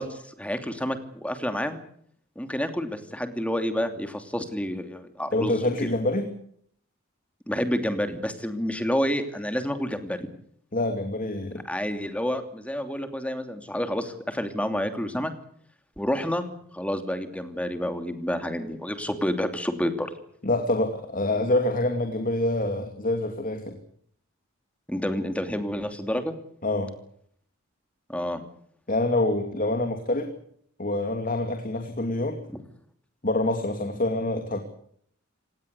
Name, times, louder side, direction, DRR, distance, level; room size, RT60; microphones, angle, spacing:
voice 1, 0.0-1.8 2.4-5.5 5.8-5.9 7.5-10.3 11.5-15.3 16.0-20.1 24.9-26.3 28.1-28.4 32.5-32.6, equal, 5° left, 8 dB, 2.8 m, -29 dB
voice 2, 5.3-6.3 10.7-11.6 20.4-23.8 26.6-26.9 28.9-30.3 30.8-32.4 33.2-34.6, left 2 dB, 45° left, 6 dB, 2.6 m, -26 dB
28.0 x 18.0 x 8.3 m, 0.65 s
head